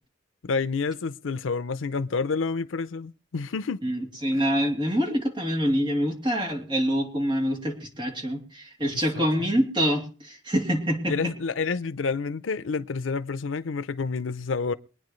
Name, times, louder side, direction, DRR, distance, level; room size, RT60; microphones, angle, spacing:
voice 1, 0.4-3.8 9.1-9.2 11.1-14.7, left 4 dB, 85° left, 0.6 m, -29 dB
voice 2, 3.8-11.3, equal, 25° right, 2.9 m, -26 dB
23.5 x 9.6 x 3.1 m
head